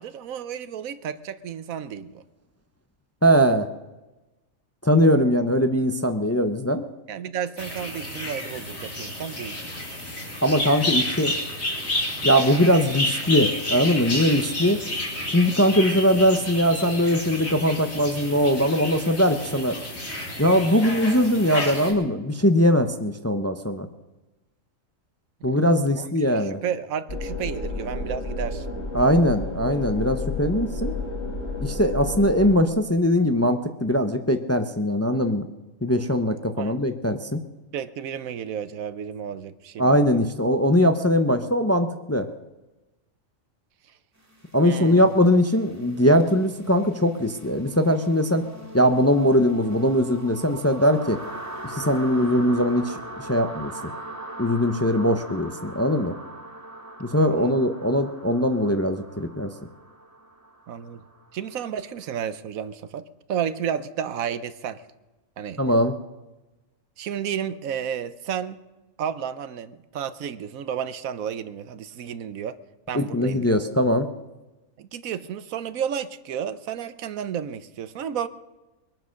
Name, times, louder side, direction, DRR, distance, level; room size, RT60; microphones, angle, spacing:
voice 1, 0.0-2.2 7.1-9.6 25.4-25.6 25.9-26.1 26.3-28.7 36.3-36.8 37.7-39.9 44.6-45.1 57.3-57.6 60.7-61.0 61.3-63.0 63.3-64.8 65.4-65.6 67.0-68.6 69.0-72.6 72.9-73.6 74.8-78.3, right 8 dB, 90° right, 14 dB, 1.2 m, -32 dB
voice 2, 3.2-3.7 4.8-6.8 10.4-11.3 12.2-14.8 15.3-19.8 20.4-23.9 25.4-26.6 28.9-30.9 31.6-35.5 35.8-37.4 39.8-42.3 44.5-48.4 48.7-51.2 51.6-53.7 54.4-56.2 57.0-59.5 65.6-66.0 72.9-74.1, equal, 15° left, 7 dB, 0.5 m, -21 dB
sound 1, 7.6-21.9, left 1 dB, 80° left, 3.9 m, -30 dB
sound 2, 27.1-32.6, left 2 dB, 55° left, 2.5 m, -31 dB
sound 3, 44.3-62.1, right 1 dB, 10° right, 2.1 m, -41 dB
23.0 x 9.1 x 6.4 m, 1.1 s
omnidirectional pair, 1.4 m